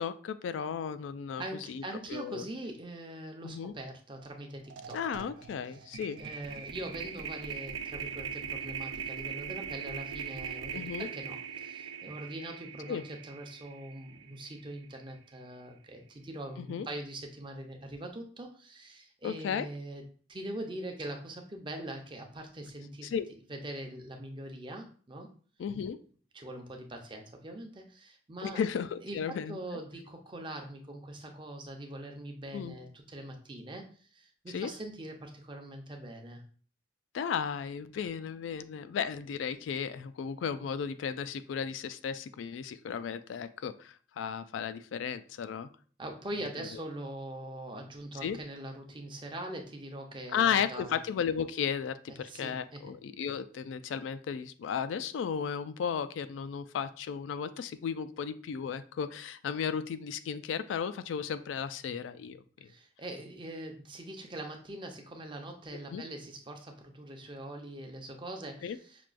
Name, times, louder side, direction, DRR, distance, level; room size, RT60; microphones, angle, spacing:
voice 1, 0.0-1.8 2.1-2.5 3.4-3.7 4.9-6.2 10.7-11.1 12.9-13.0 16.6-16.9 19.2-19.7 23.0-23.3 25.6-26.0 28.4-29.6 32.5-32.8 34.5-34.7 37.1-45.7 46.7-46.8 48.2-48.4 50.3-62.7 65.9-66.0 68.6-68.8, left 7 dB, 85° left, 12 dB, 0.3 m, -34 dB
voice 2, 1.4-5.3 5.8-23.1 23.5-25.3 26.3-28.6 29.0-36.4 46.0-51.0 52.1-52.9 62.6-69.1, right 1 dB, 25° right, 3 dB, 0.6 m, -42 dB
sound 1, 4.2-4.4 4.7-14.9, right 7 dB, 85° right, 0.4 m, -41 dB
5.9 x 2.3 x 2.4 m, 0.42 s
head